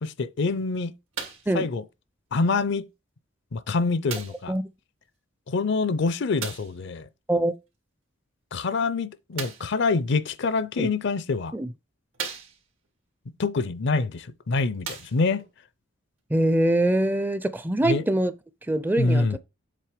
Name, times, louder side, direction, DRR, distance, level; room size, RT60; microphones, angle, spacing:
voice 1, 0.0-0.9 1.5-1.8 2.3-2.9 3.5-4.5 5.5-7.1 8.5-11.5 13.4-15.4 17.8-18.0 19.0-19.4, left 3 dB, 60° left, 0.5 m, -25 dB
sound 1, 1.1-1.6 2.5-2.6 4.1-4.5 6.4-6.8 9.3-9.8 10.7-10.8 11.5-11.6 12.1-12.9 14.1-14.2 14.7-15.5 16.3-16.4, right 6 dB, 90° right, 2.0 m, -36 dB
voice 2, 16.3-18.3 18.7-19.4, right 1 dB, 10° right, 0.4 m, -23 dB
7.6 x 3.3 x 5.0 m
head